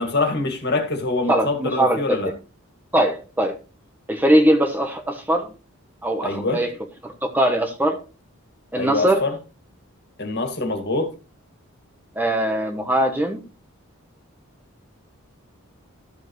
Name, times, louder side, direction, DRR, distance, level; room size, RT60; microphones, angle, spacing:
voice 1, 0.0-2.3 6.2-6.6 8.8-9.3 10.2-11.1, left 2 dB, 50° left, 2.1 m, -24 dB
voice 2, 1.3-2.2 2.9-3.6 4.1-5.5 6.0-6.7 7.0-8.0 8.7-9.3 12.2-13.4, right 1 dB, 10° right, 1.0 m, -21 dB
13.5 x 7.0 x 3.1 m
head